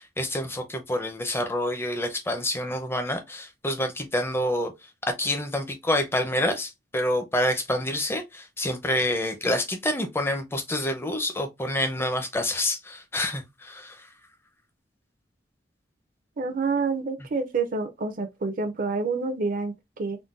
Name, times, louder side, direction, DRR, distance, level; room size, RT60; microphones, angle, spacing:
voice 1, 0.0-4.7 5.2-14.1, left 1 dB, 15° left, 0.6 m, -27 dB
voice 2, 16.4-20.2, right 4 dB, 50° right, 0.5 m, -28 dB
3.7 x 2.1 x 2.4 m
head